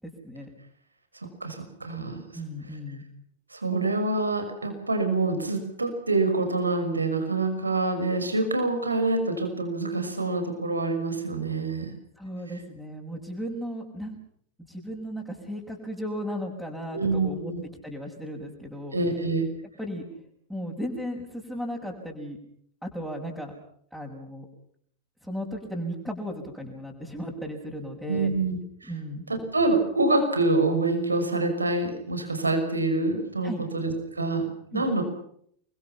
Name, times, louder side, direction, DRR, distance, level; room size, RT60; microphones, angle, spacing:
voice 1, 0.0-0.5 2.3-3.0 12.2-14.2 14.7-17.5 17.8-19.0 19.8-20.0 20.5-22.4 22.8-23.5 23.9-24.5 25.2-28.3 28.9-29.3 33.4-33.6 34.7-34.9, equal, ahead, -2 dB, 6.1 m, -35 dB
voice 2, 1.4-2.2 3.5-11.9 16.9-17.6 18.9-19.5 28.1-28.9 29.3-35.0, right 2 dB, 80° right, 6 dB, 5.7 m, -26 dB
30.0 x 23.0 x 5.9 m, 0.67 s
figure-of-eight pair, 90°, 0 cm